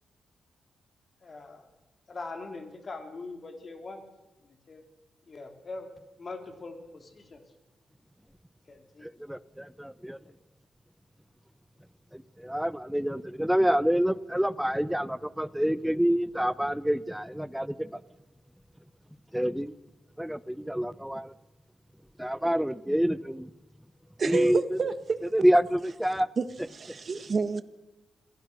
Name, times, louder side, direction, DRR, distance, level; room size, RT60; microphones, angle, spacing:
voice 1, 1.2-1.7 2.1-4.0 4.4-4.8 5.3-5.9 6.2-7.4 8.7-9.1, left 3 dB, 35° left, 4 dB, 3.9 m, -42 dB
voice 2, 9.3-10.2 12.1-17.9 19.3-19.7 20.2-21.3 22.2-23.5 24.2-24.6 25.4-26.3, equal, 5° right, 17 dB, 0.7 m, -27 dB
voice 3, 24.2-25.5 26.4-27.6, right 4 dB, 40° right, 12 dB, 1.3 m, -30 dB
28.0 x 19.5 x 6.5 m, 1.1 s
cardioid pair, 125°, 0 cm